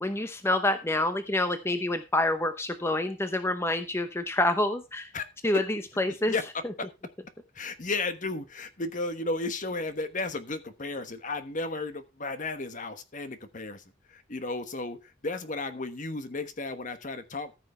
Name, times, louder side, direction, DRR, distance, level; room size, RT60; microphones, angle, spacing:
voice 1, 0.0-5.1 5.4-5.6 6.0-6.3, left 1 dB, 15° left, 0.8 m, -27 dB
voice 2, 6.3-6.9 7.5-13.8 14.1-17.5, left 3 dB, 40° left, 1.2 m, -34 dB
14.5 x 6.1 x 4.3 m
head